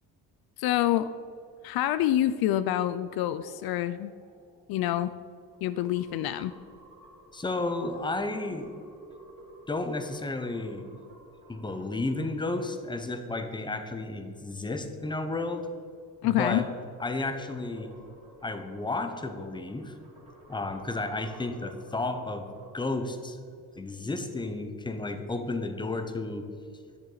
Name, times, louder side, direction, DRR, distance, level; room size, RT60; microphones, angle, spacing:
voice 1, 0.6-1.1 1.6-4.1 4.7-5.1 5.6-6.5 16.2-16.7, left 13 dB, 70° left, 13 dB, 0.5 m, -27 dB
sound 1, 3.4-14.0 16.0-22.9, right 1 dB, 15° right, 2.4 m, -55 dB
voice 2, 7.3-8.8 9.7-10.8 11.5-15.7 16.2-16.7 17.0-17.9 18.4-20.0 20.5-22.5 22.7-23.4 23.8-26.5, left 2 dB, 10° left, 8 dB, 0.8 m, -32 dB
10.5 x 7.0 x 4.0 m, 2.4 s
cardioid pair, 100°, 38 cm